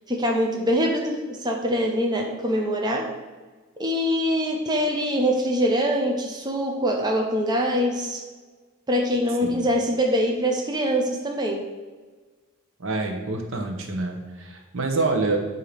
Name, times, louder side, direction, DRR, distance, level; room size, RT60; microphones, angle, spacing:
voice 1, 0.1-3.1 3.8-8.2 8.9-11.6, equal, 20° right, 1 dB, 0.6 m, -24 dB
voice 2, 12.8-15.4, right 3 dB, 65° right, 4 dB, 0.9 m, -27 dB
7.9 x 2.8 x 5.0 m, 1.4 s
head